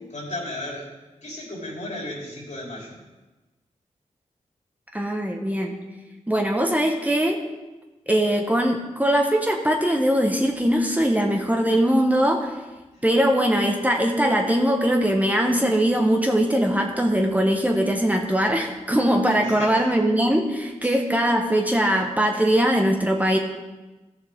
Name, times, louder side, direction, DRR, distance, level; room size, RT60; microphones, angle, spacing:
voice 1, 0.1-0.9 1.2-3.0 12.9-13.0 19.5-19.9 20.8-21.0, left 1 dB, 65° left, -4 dB, 3.6 m, -34 dB
voice 2, 4.9-5.8 6.3-7.4 8.1-12.5 13.0-23.4, equal, 10° right, 1 dB, 1.2 m, -21 dB
14.0 x 6.9 x 3.6 m, 1.1 s
cardioid pair, 55°, 13 cm